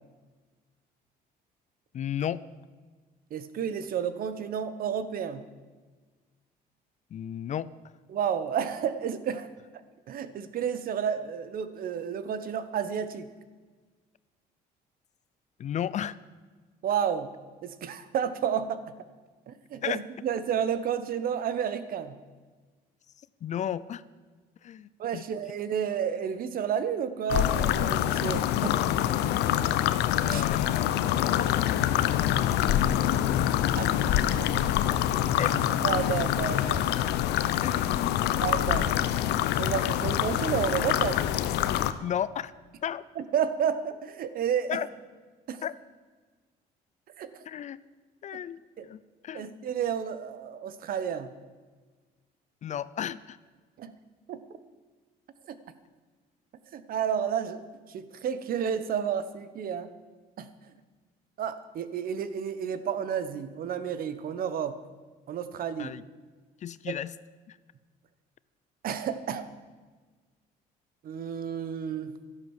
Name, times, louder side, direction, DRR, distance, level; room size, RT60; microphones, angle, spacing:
voice 1, 1.9-2.4 7.1-7.7 15.6-16.2 19.8-20.0 23.4-24.0 24.6-25.2 30.2-31.5 34.5-34.7 35.4-35.6 37.6-38.5 42.0-42.5 42.8-43.0 44.7-44.9 45.6-45.7 47.5-47.8 48.2-49.6 52.6-53.4 65.8-66.0 66.6-67.1 67.5-67.6, left 9 dB, 45° left, 18 dB, 0.5 m, -34 dB
voice 2, 3.3-5.4 8.1-9.5 10.1-13.3 16.8-17.3 17.6-18.8 19.5-22.2 25.0-28.8 30.2-30.7 33.8-33.9 35.8-36.9 38.4-38.9 39.3-41.2 43.2-44.7 45.5-45.6 47.2-47.3 48.8-48.9 49.3-51.3 53.8-53.9 54.3-54.4 55.5-55.6 56.7-59.9 60.4-60.5 61.4-64.8 65.3-66.0 66.9-67.0 68.8-69.5 71.0-72.2, right 8 dB, 60° right, 12 dB, 1.2 m, -31 dB
sound 1, 27.3-41.9, left 11 dB, 80° left, 0.8 m, -25 dB
12.5 x 11.0 x 7.3 m, 1.4 s
cardioid pair, 110°, 17 cm